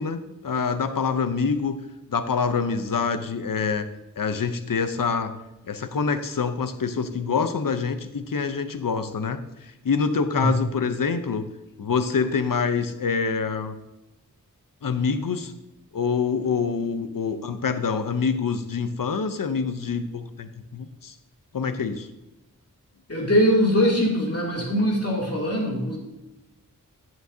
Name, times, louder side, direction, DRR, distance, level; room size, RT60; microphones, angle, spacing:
voice 1, 0.0-1.8 2.1-3.9 4.2-5.3 5.6-11.5 11.8-13.8 14.8-15.5 15.9-21.2 21.5-22.1, left 5 dB, 70° left, 10 dB, 0.7 m, -26 dB
voice 2, 23.1-26.0, equal, 45° left, -3 dB, 2.6 m, -22 dB
10.0 x 7.7 x 2.7 m, 0.97 s
wide cardioid pair, 60°, 35 cm